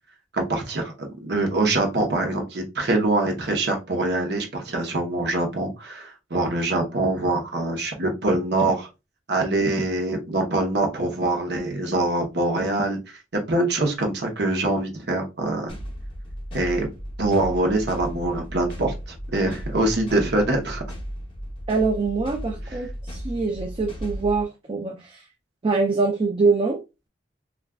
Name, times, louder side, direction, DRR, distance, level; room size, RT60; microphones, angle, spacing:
voice 1, 0.3-8.9 9.3-13.2 13.5-15.8 16.5-16.9 17.2-18.9 19.3-20.8 22.7-22.8, right 2 dB, 70° right, 0.8 m, -24 dB
sound 1, 15.7-24.4, equal, 30° left, 0.7 m, -35 dB
voice 2, 21.7-25.2 25.6-26.8, right 4 dB, 30° right, 0.4 m, -24 dB
3.5 x 2.4 x 2.2 m
head